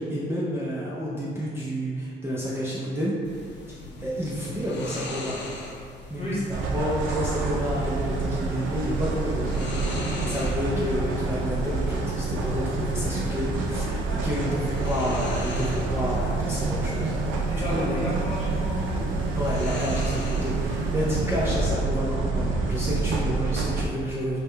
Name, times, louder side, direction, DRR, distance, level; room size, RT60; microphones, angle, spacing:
voice 1, 0.0-3.2 3.7-5.4 6.1-17.1 17.6-18.0 19.4-24.4, equal, 10° right, -7 dB, 0.5 m, -30 dB
sound 1, 3.2-21.7, left 1 dB, 65° left, 0.6 m, -40 dB
sound 2, 6.5-23.9, right 3 dB, 80° right, 0.4 m, -28 dB
voice 2, 17.5-19.1, equal, 30° left, -6 dB, 1.1 m, -33 dB
3.5 x 2.1 x 3.2 m, 2.2 s
cardioid pair, 90°, 20 cm